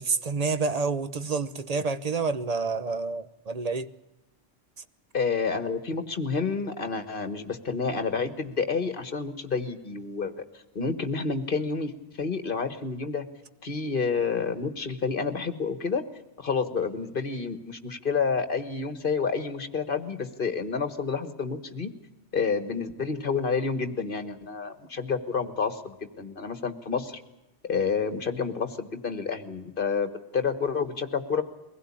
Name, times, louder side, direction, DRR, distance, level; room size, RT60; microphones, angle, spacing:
voice 1, 0.0-3.9, right 4 dB, 35° right, 0.9 m, -28 dB
voice 2, 5.1-10.3 10.7-11.9 12.2-13.2 13.6-16.0 16.4-21.9 22.3-27.2 27.7-31.4, left 5 dB, 50° left, 1.7 m, -29 dB
23.0 x 16.5 x 8.6 m
omnidirectional pair, 1.2 m